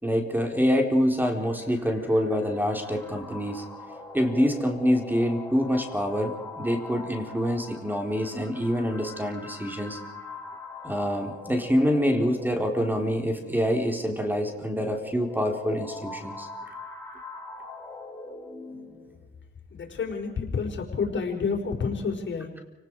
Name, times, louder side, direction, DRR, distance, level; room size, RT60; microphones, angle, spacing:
voice 1, 0.0-3.7 4.1-10.0 10.8-16.5, equal, 10° right, 3 dB, 4.3 m, -26 dB
sound 1, 1.3-19.2, left 3 dB, 10° left, 7.6 m, -42 dB
voice 2, 19.7-22.5, left 5 dB, 65° left, 2 dB, 5.0 m, -29 dB
30.0 x 19.0 x 4.9 m, 1.1 s
cardioid pair, 75°, 20 cm